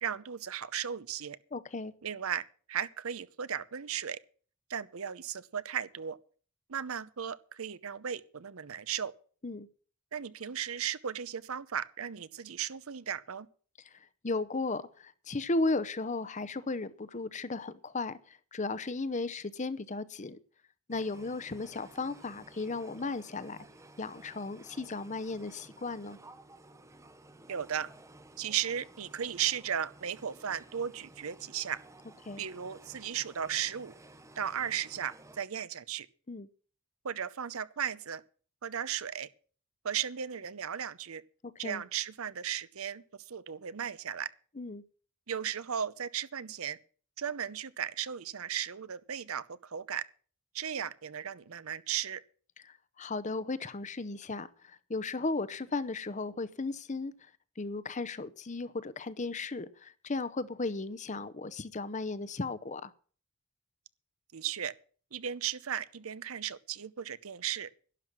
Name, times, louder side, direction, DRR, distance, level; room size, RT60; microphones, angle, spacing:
voice 1, 0.0-1.4 2.0-4.2 4.7-6.2 6.7-9.1 10.1-13.5 27.5-27.9 28.4-31.8 32.4-33.9 34.4-36.1 37.0-38.2 38.6-39.3 39.8-41.2 41.6-43.0 43.3-44.3 45.3-46.8 47.2-50.0 50.5-52.2 64.3-64.7 65.1-67.7, right 8 dB, 75° right, 0.7 m, -36 dB
voice 2, 1.5-1.9 9.4-9.7 14.2-20.4 20.9-23.6 24.0-26.2 32.3-32.4 36.3-36.5 41.6-41.8 44.6-44.8 53.0-57.1 57.6-62.9, left 3 dB, 35° left, 0.7 m, -35 dB
sound 1, 20.9-35.4, right 2 dB, 15° right, 0.7 m, -55 dB
12.0 x 10.5 x 6.1 m
head